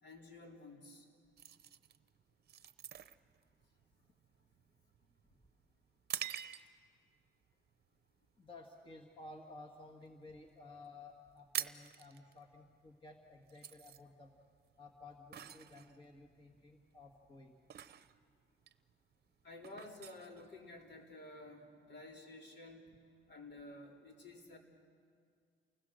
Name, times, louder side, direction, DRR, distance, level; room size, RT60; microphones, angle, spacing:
voice 1, 0.0-1.1 19.4-22.9 23.3-24.6, left 2 dB, 60° left, 0 dB, 3.9 m, -52 dB
sound 1, 1.4-7.0 7.5-7.7 8.2-8.6 8.9-10.1 10.4-10.5 10.7-10.8 11.1-21.1, right 9 dB, 55° right, 0.8 m, -47 dB
voice 2, 8.4-14.4 14.8-17.6, left 2 dB, 25° left, 1 dB, 1.8 m, -55 dB
29.5 x 20.0 x 6.6 m, 2.1 s
cardioid pair, 90°, 20 cm